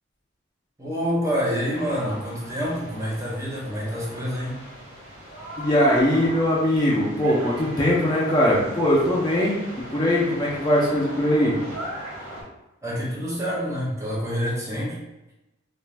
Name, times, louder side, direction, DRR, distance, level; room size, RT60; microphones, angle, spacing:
voice 1, 0.8-4.6 12.8-15.0, equal, 15° right, -5 dB, 0.7 m, -27 dB
sound 1, 1.7-12.4, equal, 80° right, 1.1 m, -39 dB
voice 2, 5.6-9.6 9.9-11.6, left 1 dB, 20° left, -5 dB, 0.4 m, -21 dB
2.4 x 2.1 x 3.2 m, 0.99 s
head